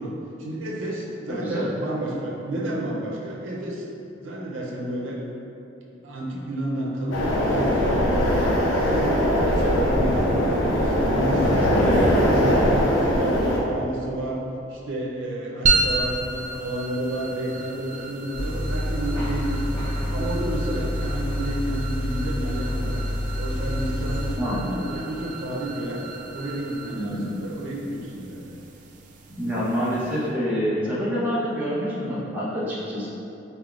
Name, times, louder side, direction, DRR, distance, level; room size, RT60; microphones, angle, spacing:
voice 1, 0.0-3.8 4.2-5.2 6.0-8.5 8.8-10.3 10.7-14.4 14.7-19.8 20.1-23.0 23.4-26.0 26.3-28.6, right 1 dB, 90° right, -3 dB, 0.6 m, -30 dB
voice 2, 1.3-1.7 11.3-11.5 24.4-24.7 26.9-27.3 29.3-33.1, equal, 10° right, -10 dB, 0.9 m, -27 dB
sound 1, 7.1-13.6, equal, 75° left, 0.7 m, -21 dB
sound 2, 15.6-30.3, right 3 dB, 40° right, 0.3 m, -32 dB
sound 3, 18.3-24.4, left 1 dB, 25° left, 1.1 m, -27 dB
4.2 x 3.4 x 2.4 m, 2.9 s
head